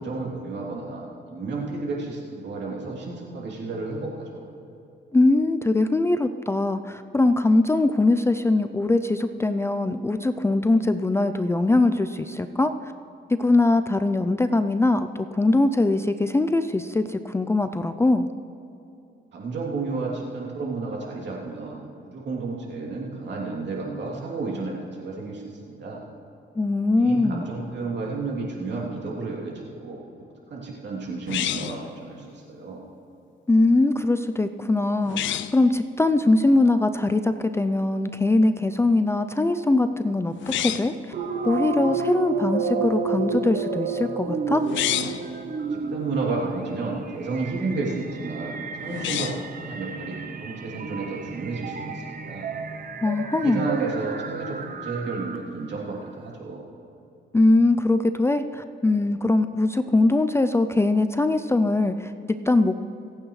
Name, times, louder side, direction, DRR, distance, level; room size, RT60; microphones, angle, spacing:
voice 1, 0.0-4.5 19.3-26.0 27.0-30.0 30.5-32.8 45.7-52.5 53.4-56.6, right 3 dB, 60° right, -3 dB, 3.1 m, -32 dB
voice 2, 5.1-12.9 13.3-18.3 26.6-27.5 33.5-40.9 41.4-44.6 53.0-53.7 57.3-62.8, left 2 dB, 15° left, 9 dB, 0.4 m, -22 dB
sound 1, 31.3-31.9 35.0-35.6 40.4-41.0 44.6-45.3 48.9-49.5, left 12 dB, 75° left, 0.5 m, -28 dB
sound 2, 41.1-55.7, right 5 dB, 45° right, 0.9 m, -31 dB
26.0 x 8.8 x 3.2 m, 2.8 s
cardioid pair, 90°, 20 cm